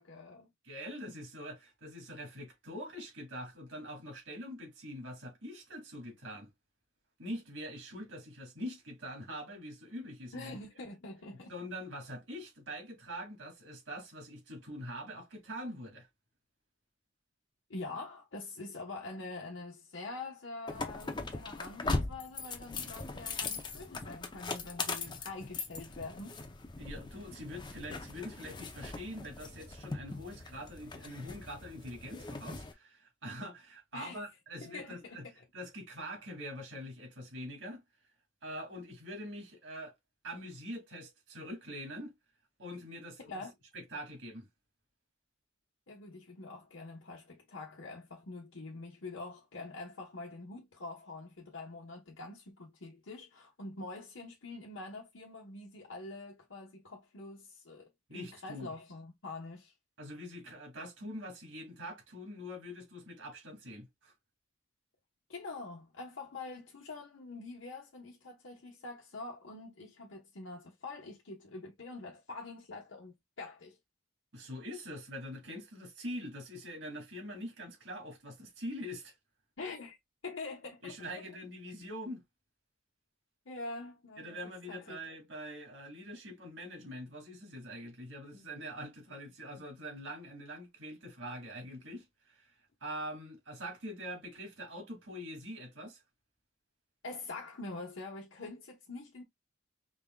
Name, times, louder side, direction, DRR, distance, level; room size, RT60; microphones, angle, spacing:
voice 1, 0.0-0.5 10.3-11.5 17.7-26.4 33.9-34.2 34.6-35.2 43.3-43.5 45.9-59.7 65.3-73.8 79.6-80.0 80.2-81.2 83.5-85.0 97.0-99.2, left 3 dB, 80° left, 1.1 m, -45 dB
voice 2, 0.6-6.5 7.2-10.6 11.5-16.1 26.8-35.3 35.5-37.8 38.4-39.9 40.2-42.1 42.6-43.4 43.7-44.5 58.1-58.7 60.0-64.1 74.3-79.1 80.8-82.2 84.2-92.5 92.8-96.0, equal, 70° right, 2.4 m, -44 dB
sound 1, 20.7-32.7, left 3 dB, 25° left, 0.6 m, -40 dB
5.1 x 3.5 x 2.2 m
head